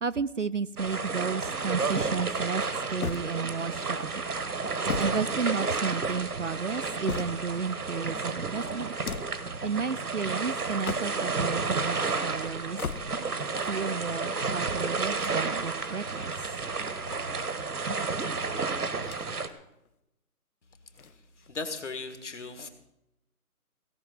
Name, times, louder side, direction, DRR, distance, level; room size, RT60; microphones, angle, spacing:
voice 1, 0.0-2.6 2.9-4.2 5.0-8.9 9.6-12.8 13.6-16.5, right 5 dB, 55° right, 15 dB, 0.5 m, -32 dB
sound 1, 0.8-19.5, right 4 dB, 80° right, 1.6 m, -31 dB
sound 2, 3.0-3.8 4.6-6.0 6.6-7.7 8.8-9.5 10.6-11.4 12.6-13.4 15.0-15.9 16.8-17.7 18.9-19.5 19.8-19.9 20.9-21.7, left 6 dB, 70° left, 1.0 m, -39 dB
voice 2, 21.5-22.7, left 4 dB, 50° left, 8 dB, 1.7 m, -36 dB
17.0 x 6.0 x 9.3 m, 0.85 s
figure-of-eight pair, 175°, 45 cm